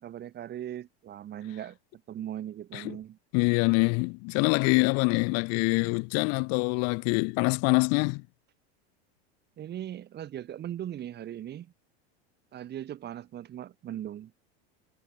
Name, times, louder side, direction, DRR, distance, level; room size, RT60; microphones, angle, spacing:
voice 1, 0.0-1.8 2.1-3.2 9.6-11.7 12.5-14.3, right 11 dB, 30° right, 1.6 m, -39 dB
voice 2, 3.3-8.2, left 34 dB, 50° left, 0.5 m, -25 dB
supercardioid pair, 125°, 33 cm